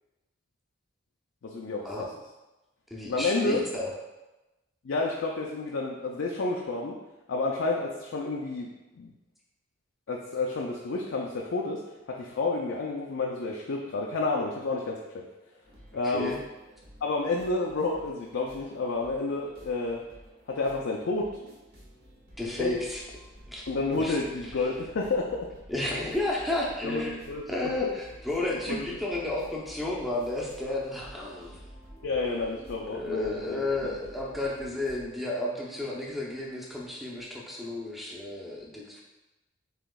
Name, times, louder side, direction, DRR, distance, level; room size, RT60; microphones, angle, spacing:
voice 1, 1.4-2.1 3.1-3.7 4.8-7.0 7.3-8.7 9.0-9.1 10.1-15.3 15.9-16.4 17.0-20.0 20.5-21.5 22.6-22.8 23.7-25.5 26.8-27.7 28.7-28.9 32.0-33.6, left 3 dB, 70° left, -1 dB, 0.4 m, -30 dB
voice 2, 2.9-3.9 16.0-16.4 22.4-23.0 23.5-23.6 23.9-24.2 24.4-24.5 25.7-27.2 27.5-31.6 32.9-39.0, left 2 dB, ahead, -4 dB, 0.6 m, -32 dB
sound 1, 15.6-35.0, equal, 50° right, 1.3 m, -51 dB
7.5 x 3.0 x 2.3 m, 1.1 s
head